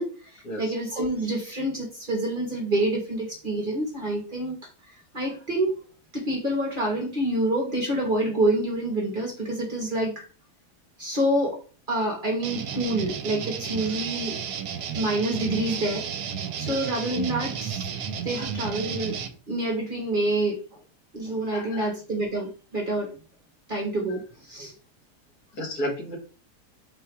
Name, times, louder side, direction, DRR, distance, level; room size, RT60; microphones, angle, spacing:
voice 1, 0.0-5.8 6.1-10.3 11.0-14.4 14.9-16.1 16.5-17.9 18.2-19.2 19.5-20.8 21.1-23.1 23.7-24.7, right 1 dB, 40° right, 0.9 m, -27 dB
sound 1, 12.4-19.3, right 7 dB, 75° right, 1.1 m, -32 dB
voice 2, 21.5-21.9 25.5-26.2, equal, 70° left, 1.9 m, -33 dB
4.1 x 2.3 x 4.4 m
omnidirectional pair, 1.7 m